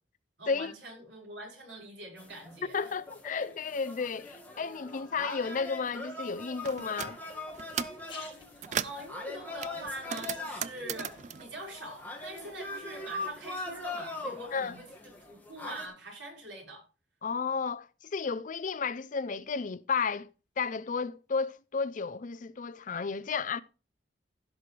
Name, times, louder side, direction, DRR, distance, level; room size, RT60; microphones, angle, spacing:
voice 1, 0.4-2.9 8.1-16.8, right 1 dB, 90° right, 5.1 m, -44 dB
sound 1, 2.2-15.9, left 2 dB, 10° left, 1.9 m, -42 dB
voice 2, 2.7-7.2 14.5-14.7 17.2-20.3 20.6-23.6, left 5 dB, 45° left, 0.5 m, -33 dB
sound 2, 6.6-7.1 7.5-8.0 8.4-9.1 9.6-12.5 12.8-13.9, right 8 dB, 40° right, 0.4 m, -37 dB
sound 3, 8.0-13.8, left 4 dB, 30° left, 4.2 m, -56 dB
16.0 x 6.0 x 3.3 m
head